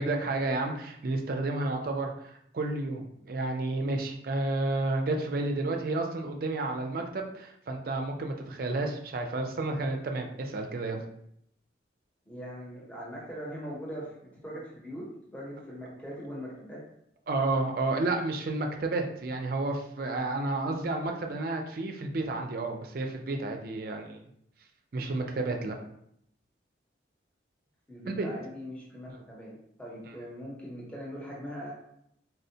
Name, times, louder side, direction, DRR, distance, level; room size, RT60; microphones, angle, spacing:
voice 1, 0.0-2.1 2.5-11.0 17.3-24.2 24.9-25.8 28.1-28.3 29.1-29.2 30.0-30.1, right 2 dB, 50° right, 3 dB, 0.4 m, -31 dB
voice 2, 12.3-16.8 27.9-31.7, equal, 5° left, -5 dB, 0.6 m, -41 dB
4.2 x 2.1 x 2.7 m, 0.74 s
head